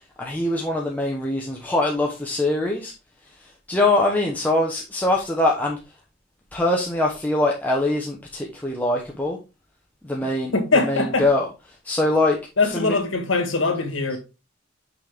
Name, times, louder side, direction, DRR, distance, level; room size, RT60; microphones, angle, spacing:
voice 1, 0.2-2.9 3.4-5.8 6.5-9.4 10.0-13.0, left 2 dB, 10° left, 0.8 m, -23 dB
voice 2, 10.5-11.3 12.6-14.2, left 3 dB, 85° left, 1.5 m, -22 dB
6.0 x 5.2 x 3.4 m
head